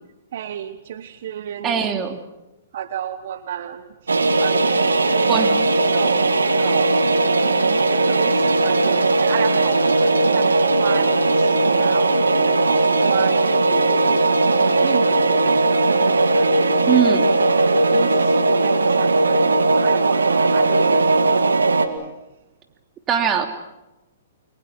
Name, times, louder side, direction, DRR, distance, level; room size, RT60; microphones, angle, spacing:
voice 1, 0.3-1.9 2.7-15.9 16.4-16.9 17.5-21.4, right 9 dB, 60° right, 12 dB, 1.2 m, -32 dB
voice 2, 1.6-2.2 5.3-5.5 16.9-17.3 23.1-23.5, right 8 dB, 25° right, 6 dB, 3.0 m, -20 dB
sound 1, 4.1-21.9, right 2 dB, 90° right, 2.1 m, -18 dB
29.5 x 22.5 x 6.2 m, 0.99 s
hypercardioid pair, 125°, 0 cm